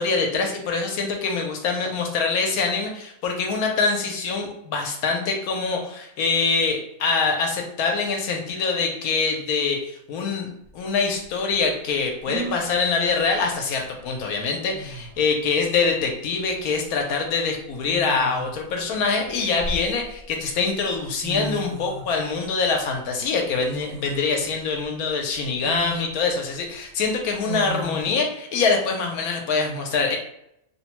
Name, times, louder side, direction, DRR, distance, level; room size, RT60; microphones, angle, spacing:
voice 1, 0.0-10.5 10.7-30.2, left 4 dB, 85° left, 2 dB, 1.1 m, -24 dB
sound 1, 10.7-10.8 12.3-12.8 14.3-14.4 14.7-15.2 16.5-16.8 17.8-18.6 19.3-20.3 21.0-21.1 21.2-22.1 23.7-24.3 24.8-24.9 25.6-26.1 27.5-28.1, right 1 dB, 80° right, 1.0 m, -34 dB
2.9 x 2.1 x 2.9 m, 0.78 s
omnidirectional pair, 1.5 m